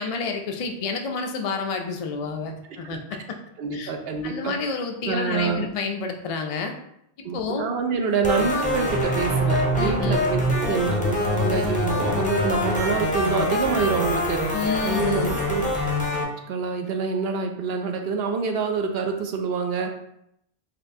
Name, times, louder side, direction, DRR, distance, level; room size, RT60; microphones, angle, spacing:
voice 1, 0.0-3.2 3.7-3.9 4.2-6.7 7.2-7.7 9.8-10.3 14.5-15.3, left 5 dB, 60° left, 3 dB, 0.3 m, -29 dB
voice 2, 3.6-4.6 5.0-5.7 7.2-15.6 16.5-19.9, right 5 dB, 65° right, 4 dB, 0.8 m, -26 dB
sound 1, 8.2-16.2, left 1 dB, 10° left, 0.5 m, -24 dB
4.2 x 3.1 x 2.6 m, 0.75 s
omnidirectional pair, 1.1 m